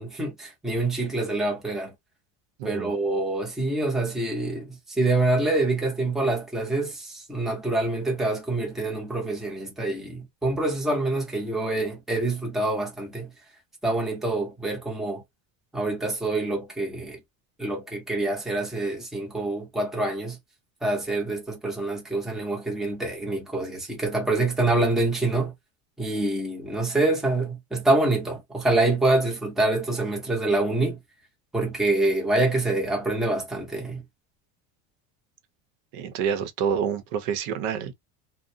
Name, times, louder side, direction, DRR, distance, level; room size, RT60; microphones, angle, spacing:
voice 1, 0.0-1.9 2.6-13.3 13.8-15.2 15.7-17.2 17.6-20.4 20.8-25.5 26.0-31.0 31.5-34.0, right 2 dB, ahead, 0.6 m, -26 dB
voice 2, 2.6-2.9 35.9-37.9, right 7 dB, 80° right, 0.7 m, -28 dB
2.5 x 2.1 x 2.6 m
cardioid pair, 160°, 37 cm